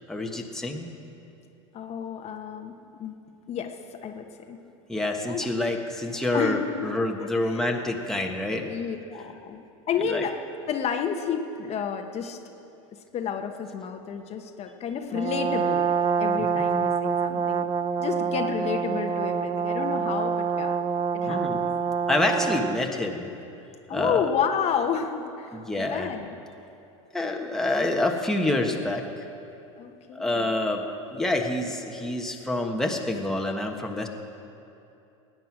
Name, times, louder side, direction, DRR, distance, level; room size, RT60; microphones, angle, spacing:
voice 1, 0.1-0.9 4.9-8.6 10.0-10.2 16.6-16.7 21.3-21.6 22.1-23.3 23.9-24.2 25.5-26.1 27.1-29.0 30.1-30.8 31.1-34.1, left 2 dB, 5° left, 1 dB, 1.4 m, -27 dB
voice 2, 1.7-2.7 3.0-3.2 3.5-4.6 5.3-5.5 6.3-7.8 8.5-10.3 10.7-12.4 13.1-15.9 16.2-17.7 18.0-20.7 21.1-21.6 23.9-26.4 29.8-30.5, left 7 dB, 40° left, 4 dB, 1.2 m, -31 dB
Brass instrument, 15.1-22.9, right 7 dB, 25° right, 0.5 m, -26 dB
18.5 x 9.4 x 6.1 m, 2.8 s
hypercardioid pair, 105°, 17 cm